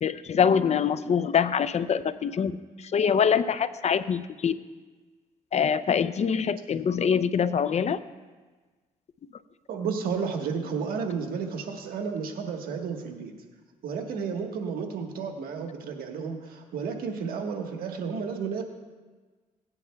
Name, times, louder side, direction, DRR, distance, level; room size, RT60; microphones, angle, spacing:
voice 1, 0.0-4.5 5.5-8.0, left 7 dB, 45° left, 14 dB, 0.5 m, -24 dB
voice 2, 9.7-13.3 13.8-18.6, right 5 dB, 85° right, 3 dB, 1.4 m, -32 dB
17.5 x 9.8 x 2.3 m, 1.3 s
cardioid pair, 75°, 15 cm